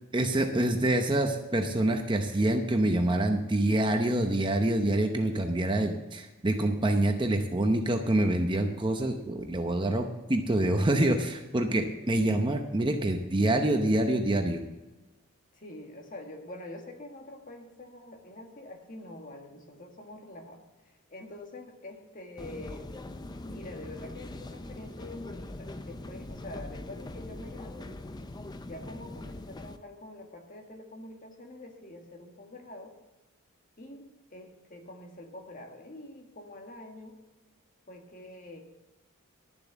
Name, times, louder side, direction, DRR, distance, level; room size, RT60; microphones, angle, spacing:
voice 1, 0.1-14.6, right 1 dB, 20° right, 5 dB, 0.7 m, -26 dB
voice 2, 15.5-22.9 23.5-27.9 28.6-33.0 33.8-37.2 37.9-38.6, left 1 dB, 35° left, 2 dB, 1.7 m, -46 dB
sound 1, 22.4-29.8, left 1 dB, 20° left, 0.4 m, -42 dB
11.5 x 7.2 x 7.2 m, 1.1 s
head